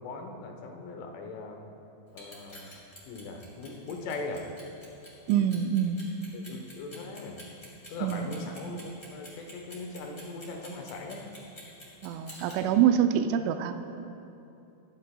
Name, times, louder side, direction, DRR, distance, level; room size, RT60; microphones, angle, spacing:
voice 1, 0.0-1.6 2.1-2.8 3.1-4.5 6.3-7.5 7.9-11.3, left 3 dB, 85° left, 2 dB, 3.6 m, -40 dB
Clock, 2.1-12.6, left 1 dB, 15° left, 2.0 m, -48 dB
voice 2, 5.3-6.1 8.0-8.5 12.0-13.7, right 9 dB, 85° right, 7 dB, 2.9 m, -25 dB
18.5 x 13.5 x 2.2 m, 2.8 s
omnidirectional pair, 5.5 m